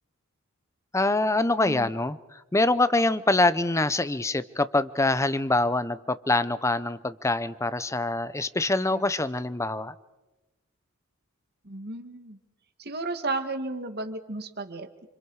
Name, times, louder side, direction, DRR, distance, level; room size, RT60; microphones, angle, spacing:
voice 1, 0.9-9.9, left 2 dB, 15° left, 15 dB, 0.7 m, -25 dB
voice 2, 11.6-12.4 12.8-15.1, right 2 dB, 50° right, 8 dB, 1.9 m, -34 dB
28.5 x 27.5 x 4.8 m, 1.1 s
head